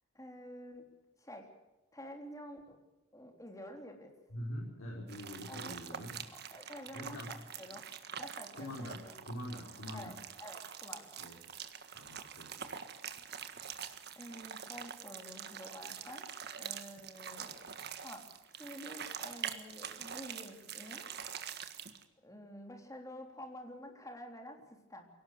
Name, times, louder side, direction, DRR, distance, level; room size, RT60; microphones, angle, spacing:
voice 1, 0.2-0.8 1.2-1.4 1.9-2.8 3.1-4.1 5.5-6.1 6.5-7.2 7.6-7.9 8.2-9.2 9.9-10.1 10.4-11.1 14.2-17.6 18.0-18.2 18.5-21.1 22.2-25.1, equal, 15° left, 3 dB, 3.4 m, -49 dB
voice 2, 4.3-6.1 6.9-7.3 8.5-10.1 11.2-11.3 11.9-12.7, equal, 85° left, -3 dB, 4.8 m, -44 dB
sound 1, 5.1-22.0, right 8 dB, 50° right, 1.6 m, -45 dB
23.0 x 18.0 x 8.0 m, 1.1 s
head